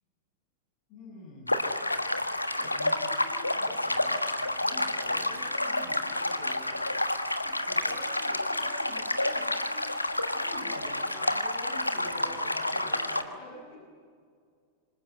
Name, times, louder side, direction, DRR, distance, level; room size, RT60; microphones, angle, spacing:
voice 1, 0.9-1.6 2.5-7.1 7.4-9.9 10.3-13.8, left 1 dB, 40° left, -1 dB, 7.9 m, -46 dB
sound 1, 1.5-13.2, left 1 dB, 85° left, 1.4 m, -29 dB
27.5 x 26.0 x 8.1 m, 2.1 s
figure-of-eight pair, 90°, 0 cm